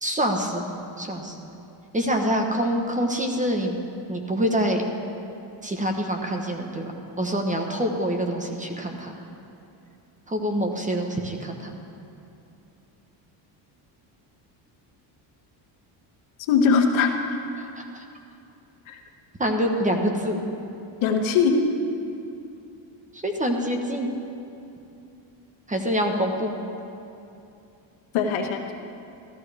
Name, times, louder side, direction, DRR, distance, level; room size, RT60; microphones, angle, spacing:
voice 1, 0.0-0.6 1.0-1.3 1.9-3.8 4.1-4.8 5.6-6.9 7.2-9.1 10.3-11.7 17.6-18.0 19.4-20.4 23.1-24.1 25.7-26.5, equal, 15° right, 3 dB, 1.1 m, -26 dB
voice 2, 16.5-17.1 18.9-19.0 21.0-21.6 28.1-28.7, left 6 dB, 70° left, 3 dB, 1.3 m, -21 dB
14.5 x 13.5 x 3.4 m, 2.7 s
cardioid pair, 115°, 49 cm